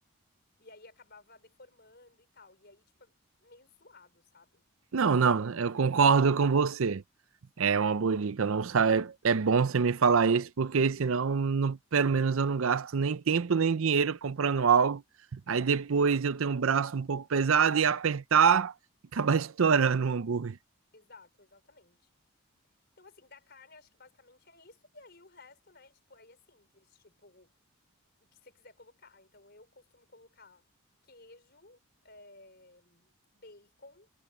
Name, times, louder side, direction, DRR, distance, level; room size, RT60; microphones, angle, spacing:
voice 1, 0.6-3.1 3.4-4.6 5.1-5.2 5.6-6.1 19.4-19.5 20.9-22.1 23.0-27.5 28.2-30.6 31.0-34.1, left 3 dB, 50° left, 5.1 m, -57 dB
voice 2, 4.9-7.0 7.6-15.0 15.3-18.7 19.1-20.6, right 6 dB, 70° right, 0.5 m, -25 dB
head